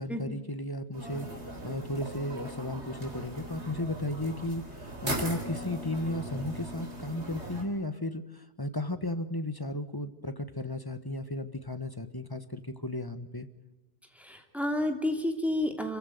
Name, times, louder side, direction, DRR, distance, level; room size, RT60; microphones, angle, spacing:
voice 1, 0.0-13.5, left 1 dB, 20° left, 10 dB, 1.4 m, -35 dB
sound 1, 0.9-7.6, right 1 dB, 80° right, 4.1 m, -39 dB
voice 2, 14.2-16.0, left 1 dB, ahead, 4 dB, 3.0 m, -30 dB
26.5 x 16.0 x 9.4 m, 1.1 s
omnidirectional pair, 1.1 m